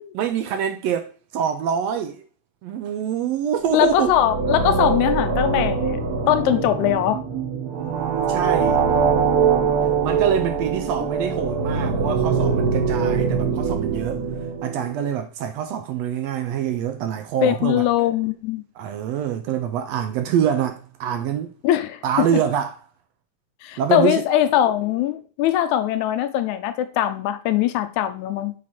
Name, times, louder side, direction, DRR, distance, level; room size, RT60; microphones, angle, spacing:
voice 1, 0.1-2.2 2.6-4.1 7.7-8.8 10.0-14.2 14.6-17.8 18.8-21.5 22.0-22.8 23.8-24.2, right 8 dB, 75° right, 1.6 m, -25 dB
voice 2, 3.7-6.0 6.3-7.2 17.4-18.6 21.6-22.4 23.6-28.5, left 11 dB, 85° left, 1.9 m, -21 dB
sound 1, 3.7-14.9, right 5 dB, 45° right, 1.3 m, -23 dB
7.6 x 4.0 x 4.1 m
omnidirectional pair, 3.4 m